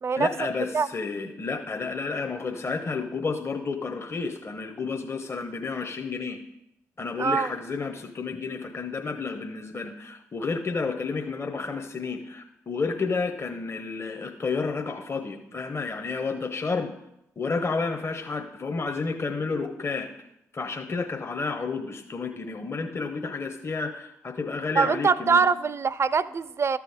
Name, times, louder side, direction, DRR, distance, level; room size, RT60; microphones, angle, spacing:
voice 1, 0.2-6.4 7.0-16.9 17.4-20.1 20.5-25.5, left 4 dB, 35° left, 4 dB, 0.9 m, -31 dB
voice 2, 7.2-7.5 24.8-26.8, right 5 dB, 40° right, 18 dB, 0.4 m, -23 dB
13.0 x 6.1 x 3.5 m, 0.83 s
hypercardioid pair, 40°, 7 cm